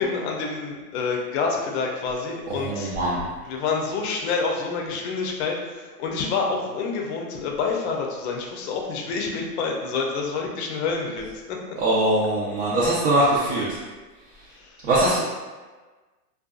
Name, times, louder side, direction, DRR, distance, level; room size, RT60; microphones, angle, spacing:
voice 1, 0.0-2.9 3.4-11.6 14.4-14.9, left 4 dB, 45° left, 0 dB, 0.5 m, -28 dB
voice 2, 2.6-3.2 11.8-13.8 14.8-15.2, right 1 dB, 50° right, -7 dB, 0.6 m, -21 dB
2.5 x 2.3 x 2.3 m, 1.3 s
hypercardioid pair, 130°, 47 cm